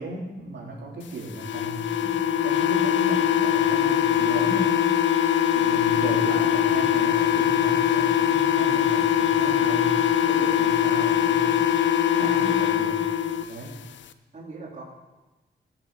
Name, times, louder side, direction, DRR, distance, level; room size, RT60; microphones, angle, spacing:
voice 1, 0.0-4.9 5.5-11.7 12.1-13.1 13.5-13.7, right 2 dB, 75° right, -2 dB, 3.2 m, -35 dB
sound 1, 1.4-13.4, left 10 dB, 80° left, 0.6 m, -22 dB
voice 2, 5.7-6.6 14.3-14.8, right 3 dB, 40° right, -3 dB, 2.7 m, -42 dB
14.5 x 7.4 x 6.5 m, 1.1 s
wide cardioid pair, 170°, 19 cm